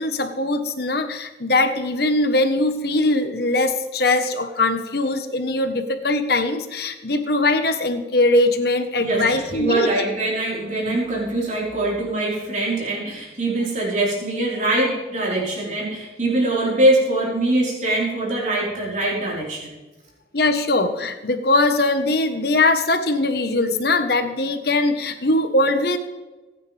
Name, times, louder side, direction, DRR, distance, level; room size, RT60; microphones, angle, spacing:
voice 1, 0.0-9.9 10.8-11.0 20.3-26.0, left 2 dB, 55° left, 7 dB, 1.4 m, -21 dB
voice 2, 9.0-19.8, right 1 dB, 40° right, -5 dB, 4.7 m, -23 dB
24.0 x 9.8 x 3.5 m, 1.2 s
head